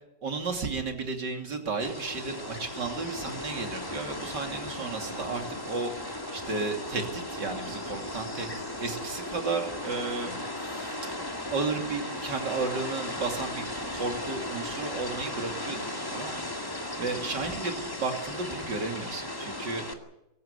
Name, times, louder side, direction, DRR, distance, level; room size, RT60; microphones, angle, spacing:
voice 1, 0.2-8.5 8.8-10.4 10.6-11.2 11.5-13.6 13.9-16.5 17.0-19.8, right 4 dB, 60° right, 4 dB, 3.5 m, -33 dB
sound 1, 1.8-19.9, left 1 dB, 10° left, 2.0 m, -36 dB
23.5 x 14.0 x 9.6 m, 0.90 s
omnidirectional pair, 2.1 m